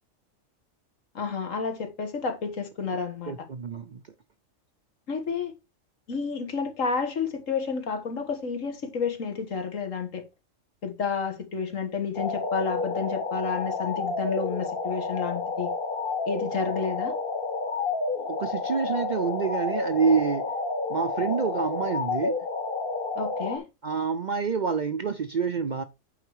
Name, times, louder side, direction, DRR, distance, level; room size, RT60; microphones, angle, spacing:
voice 1, 1.2-3.3 5.1-5.5 6.1-10.2 10.8-15.7 16.3-17.1 23.2-23.6, left 5 dB, 75° left, 2.0 m, -30 dB
voice 2, 3.3-4.0 18.2-20.5 20.9-22.4 23.8-25.8, right 5 dB, 50° right, 0.6 m, -27 dB
sound 1, 12.1-23.6, left 3 dB, 45° left, 1.5 m, -30 dB
8.6 x 4.8 x 4.7 m
omnidirectional pair, 1.3 m